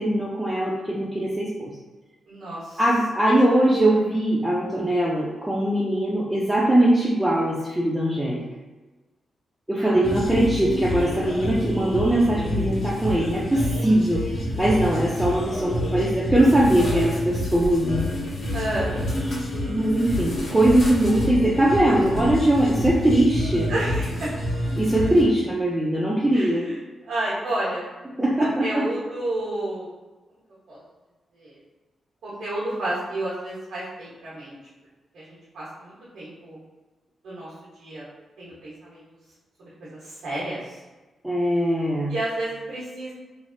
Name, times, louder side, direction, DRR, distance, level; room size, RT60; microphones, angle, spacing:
voice 1, 0.0-1.7 2.8-8.4 9.7-14.2 14.6-18.1 19.7-23.7 24.8-26.6 28.2-28.8 41.2-42.1, right 1 dB, 10° right, -5 dB, 0.5 m, -21 dB
voice 2, 2.3-2.8 9.8-10.1 18.5-19.2 23.7-24.3 26.3-27.8 28.4-29.9 30.7-30.8 31.3-31.6 32.2-34.6 35.1-36.6 37.2-38.0 38.4-39.0 39.6-40.8 42.1-43.1, right 1 dB, 85° right, -10 dB, 1.1 m, -31 dB
sound 1, 10.0-25.2, left 1 dB, 70° left, 1.4 m, -28 dB
3.3 x 2.0 x 2.6 m, 1.2 s
cardioid pair, 55°, 0 cm